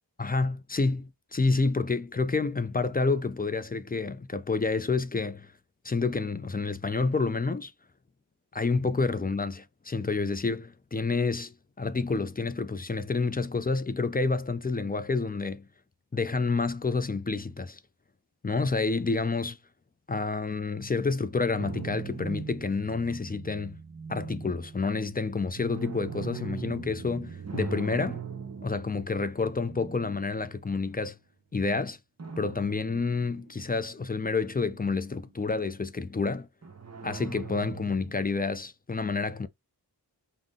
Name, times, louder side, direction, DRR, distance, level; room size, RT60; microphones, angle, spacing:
voice 1, 0.2-5.5 5.8-7.7 8.5-15.7 16.1-17.8 18.4-19.6 20.1-23.8 24.1-28.2 28.6-31.2 31.5-32.0 32.4-36.5 37.0-39.5, left 4 dB, 25° left, 0.3 m, -29 dB
sound 1, 21.6-30.9 32.2-33.8 34.2-35.3 36.6-38.3, right 6 dB, 40° right, 0.7 m, -40 dB
3.9 x 2.1 x 3.6 m
wide cardioid pair, 60°, 42 cm